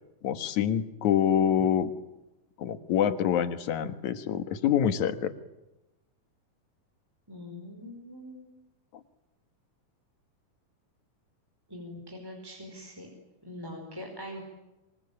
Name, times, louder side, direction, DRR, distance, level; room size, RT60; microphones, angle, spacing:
voice 1, 0.2-1.9 2.6-5.3, left 9 dB, 65° left, 10 dB, 2.8 m, -26 dB
voice 2, 7.3-8.6 11.7-13.1 13.4-14.4, left 1 dB, 5° right, 1 dB, 4.7 m, -43 dB
26.5 x 25.0 x 8.7 m, 0.97 s
omnidirectional pair, 3.8 m